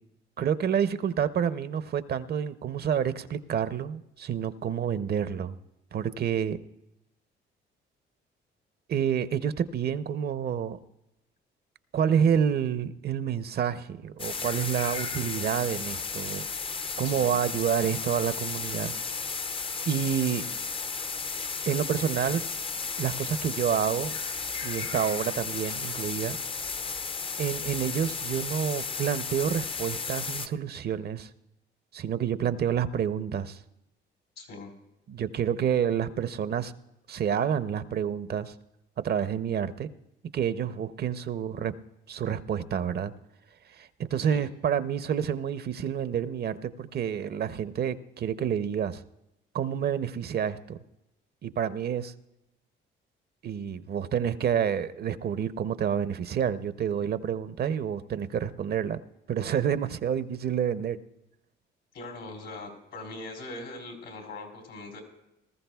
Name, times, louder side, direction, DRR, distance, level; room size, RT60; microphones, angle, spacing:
voice 1, 0.4-5.6 5.9-6.6 8.9-10.8 11.9-16.5 17.0-18.9 19.9-20.4 21.7-22.4 23.0-24.1 24.6-26.4 27.4-31.3 31.9-33.6 35.1-36.7 37.1-38.5 39.0-39.9 40.3-41.7 42.1-43.1 43.7-49.0 49.5-50.8 51.4-52.1 53.4-59.0 59.3-61.0, right 8 dB, 55° right, 13 dB, 0.6 m, -28 dB
sound 1, 14.2-30.5, left 5 dB, 25° left, 0.5 m, -34 dB
voice 2, 17.0-17.4 34.4-34.7 44.3-44.4 61.9-65.0, left 2 dB, 80° left, 2 dB, 3.4 m, -41 dB
19.5 x 13.5 x 2.3 m, 0.89 s
cardioid pair, 90°, 20 cm